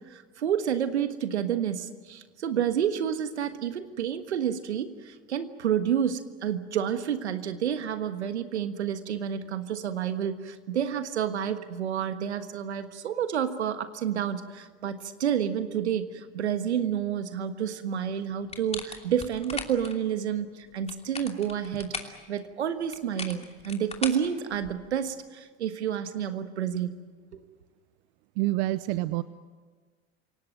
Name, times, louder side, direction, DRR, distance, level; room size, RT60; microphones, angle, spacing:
voice 1, 0.0-26.9, right 9 dB, 90° right, 10 dB, 1.5 m, -29 dB
sound 1, 18.5-19.9 20.7-22.2 22.9-24.9, left 4 dB, 20° left, 2.9 m, -38 dB
voice 2, 28.4-29.2, right 17 dB, 65° right, 15 dB, 0.8 m, -27 dB
28.0 x 18.0 x 9.1 m, 1.5 s
hypercardioid pair, 80°, 33 cm